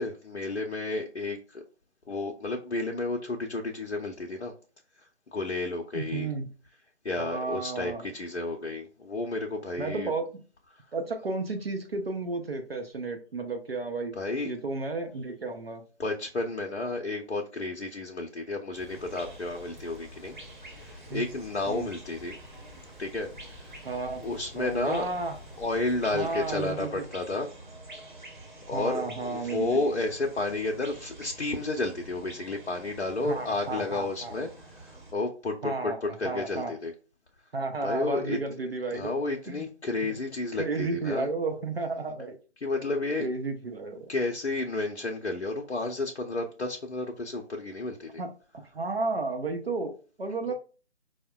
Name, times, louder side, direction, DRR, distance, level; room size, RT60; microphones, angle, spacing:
voice 1, 0.0-1.6 2.1-4.5 5.3-6.3 7.0-10.1 10.7-10.8 14.2-14.5 16.0-20.4 20.8-22.4 23.0-23.3 24.2-25.0 25.6-27.5 28.7-34.5 34.7-36.9 37.8-38.4 38.9-41.3 42.6-43.3 44.1-48.2 50.5-50.6, left 2 dB, 70° left, 2 dB, 0.6 m, -31 dB
voice 2, 5.9-6.5 7.2-8.1 9.8-10.3 10.9-14.1 14.5-15.8 21.1-21.3 21.7-21.9 23.8-24.2 24.6-25.4 26.1-27.0 28.7-29.7 33.2-34.4 35.6-36.0 36.2-36.7 37.5-39.2 39.5-39.7 40.5-42.4 43.2-44.1 48.2-48.3 48.5-49.9 50.2-50.5, right 3 dB, 60° right, 4 dB, 0.6 m, -32 dB
Rain, 18.7-26.7, left 3 dB, ahead, 0.3 m, -52 dB
sound 1, 18.9-35.1, right 2 dB, 40° right, 1.0 m, -48 dB
4.8 x 2.1 x 2.2 m, 0.37 s
figure-of-eight pair, 150°, 35 cm